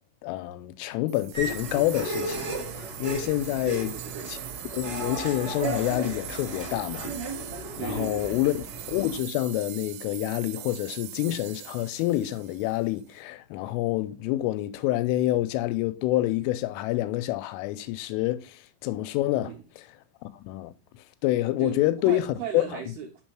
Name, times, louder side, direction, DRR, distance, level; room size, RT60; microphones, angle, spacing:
voice 1, 0.2-2.6 3.0-3.9 4.3-4.4 4.7-7.1 7.8-8.5 8.9-19.5 20.5-20.7 21.2-22.3 22.5-22.7, left 15 dB, 90° left, 3.1 m, -27 dB
sound 1, 1.1-13.1, right 16 dB, 90° right, 3.1 m, -42 dB
sound 2, 1.3-9.2, right 2 dB, 55° right, 1.0 m, -35 dB
voice 2, 3.6-4.3 7.8-8.4 19.3-19.6 21.6-23.2, right 8 dB, 70° right, 2.4 m, -37 dB
6.8 x 5.4 x 4.5 m
omnidirectional pair, 5.6 m